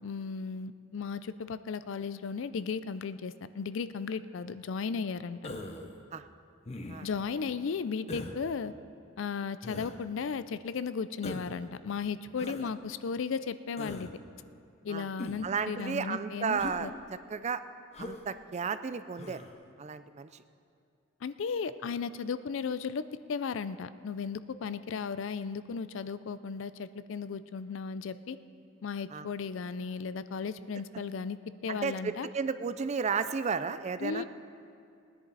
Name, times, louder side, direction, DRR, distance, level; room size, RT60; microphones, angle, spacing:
voice 1, 0.0-5.5 7.0-8.7 9.2-14.1 14.8-16.9 21.2-23.0 23.3-28.4 28.8-31.4 31.6-32.3 34.0-34.2, left 5 dB, 65° left, 14 dB, 0.4 m, -35 dB
Human voice, 5.4-5.9 6.7-7.2 8.1-8.4 9.6-10.0 11.2-11.6 12.4-12.7 13.8-14.1 15.2-15.5 16.6-16.8 17.9-18.2 19.2-19.5, left 2 dB, 30° left, 0.8 m, -40 dB
voice 2, 15.4-16.9 17.3-17.6 18.0-19.4 19.8-20.4 29.1-29.3 31.7-34.2, right 5 dB, 35° right, 12 dB, 0.4 m, -33 dB
19.5 x 10.0 x 4.0 m, 2.4 s
head